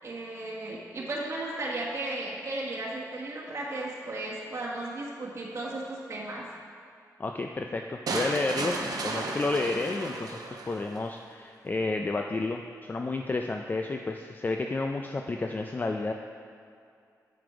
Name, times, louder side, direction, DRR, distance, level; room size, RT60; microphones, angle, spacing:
voice 1, 0.0-6.5, right 2 dB, 45° right, -5 dB, 1.4 m, -35 dB
voice 2, 7.2-16.1, left 3 dB, 25° left, 4 dB, 0.3 m, -31 dB
sound 1, 8.1-11.1, right 3 dB, 70° right, 0.8 m, -34 dB
7.4 x 5.2 x 4.8 m, 2.4 s
cardioid pair, 90°, 7 cm